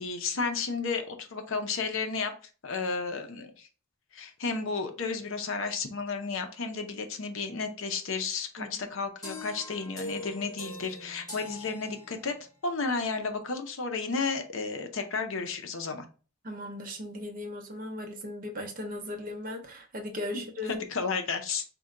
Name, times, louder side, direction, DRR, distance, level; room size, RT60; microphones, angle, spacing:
voice 1, 0.0-2.3 2.6-3.7 4.1-12.3 12.6-16.1 20.7-21.6, left 4 dB, 60° left, 0.6 m, -32 dB
sound 1, 9.2-12.5, left 2 dB, 15° left, 1.7 m, -42 dB
voice 2, 16.4-20.8, left 1 dB, 40° right, 0.6 m, -37 dB
4.1 x 2.2 x 3.6 m
head